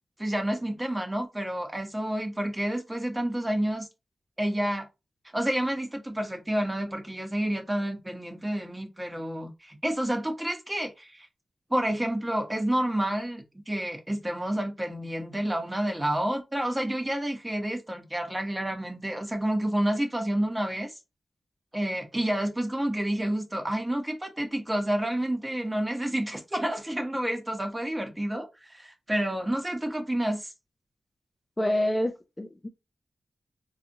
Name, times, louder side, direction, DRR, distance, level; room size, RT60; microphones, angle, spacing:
voice 1, 0.2-3.9 4.4-4.8 5.3-11.3 11.7-20.9 21.7-30.5, right 1 dB, 15° right, 1.0 m, -29 dB
voice 2, 31.6-32.7, left 1 dB, 20° left, 0.4 m, -27 dB
4.1 x 2.4 x 2.6 m
cardioid pair, 70°, 0 cm